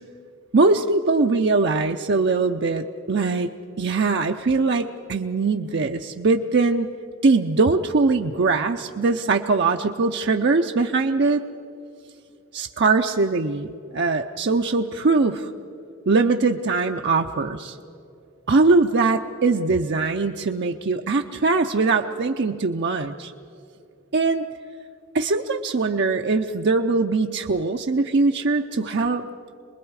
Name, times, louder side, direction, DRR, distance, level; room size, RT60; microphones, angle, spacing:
voice 1, 0.5-3.5 3.8-6.9 7.2-11.4 12.5-15.5 16.1-17.8 18.5-23.3 24.1-24.5 25.1-29.2, right 3 dB, 50° right, 4 dB, 0.5 m, -21 dB
27.5 x 21.0 x 4.8 m, 2.6 s
head